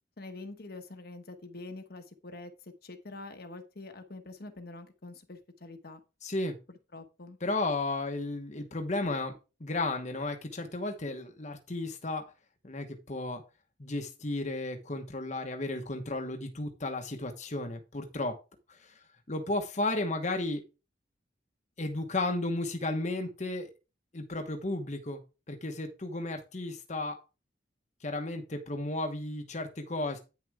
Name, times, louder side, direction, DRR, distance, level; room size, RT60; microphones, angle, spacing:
voice 1, 0.2-6.0 6.9-7.4, left 2 dB, 60° left, 7 dB, 1.2 m, -45 dB
voice 2, 6.2-6.6 7.4-9.3 9.6-12.2 12.6-13.4 13.8-18.4 18.8-18.9 19.3-20.6 21.8-23.7 24.1-25.2 25.5-27.2 28.0-30.2, left 2 dB, 40° left, 5 dB, 1.2 m, -33 dB
9.5 x 6.4 x 3.6 m, 0.30 s
head